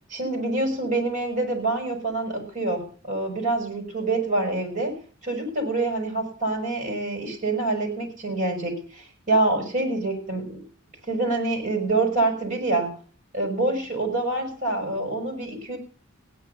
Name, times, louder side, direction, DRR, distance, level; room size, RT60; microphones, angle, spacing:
voice 1, 0.1-4.9 5.2-10.6 11.1-12.9 13.3-15.8, right 2 dB, 40° right, 3 dB, 6.5 m, -26 dB
16.5 x 10.0 x 6.8 m, 0.42 s
head